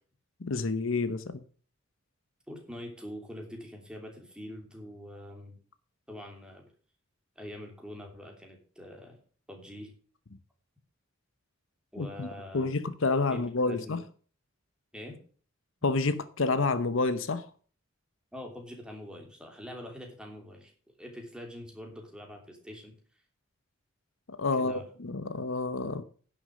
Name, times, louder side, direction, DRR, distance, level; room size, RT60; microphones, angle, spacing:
voice 1, 0.4-1.4 12.0-12.3 12.5-14.0 15.8-17.5 24.3-26.0, left 3 dB, 70° left, 0.9 m, -29 dB
voice 2, 2.5-5.6 6.1-6.6 7.4-9.2 9.5-9.9 11.9-12.7 13.3-14.0 14.9-15.2 18.3-20.7 21.0-22.9 24.6-24.8, left 1 dB, 5° right, 3.0 m, -44 dB
10.5 x 6.9 x 6.4 m
head